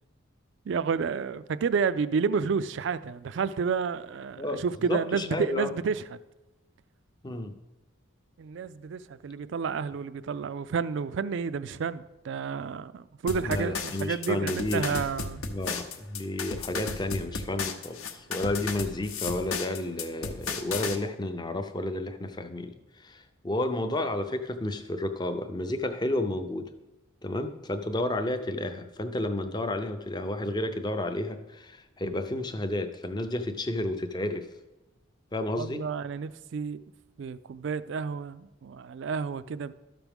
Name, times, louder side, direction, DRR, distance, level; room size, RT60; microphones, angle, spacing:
voice 1, 0.7-6.2 8.4-15.4 35.6-36.8 37.2-39.7, right 5 dB, 55° right, 0.3 m, -30 dB
voice 2, 4.4-5.7 7.2-7.5 13.4-15.0 15.4-26.7 27.2-34.5 35.3-35.8, left 1 dB, 20° left, 0.5 m, -31 dB
sound 1, 13.3-21.0, left 5 dB, 80° left, 0.8 m, -34 dB
12.5 x 6.0 x 3.5 m
head